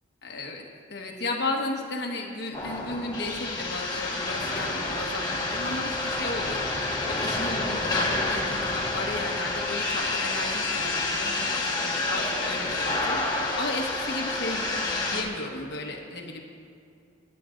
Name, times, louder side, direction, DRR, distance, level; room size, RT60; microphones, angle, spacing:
voice 1, 0.2-0.6 0.9-16.4, left 2 dB, 60° left, 0 dB, 1.3 m, -34 dB
sound 1, 2.5-15.2, left 2 dB, 20° left, 1.5 m, -29 dB
29.0 x 9.8 x 2.6 m, 2.4 s
head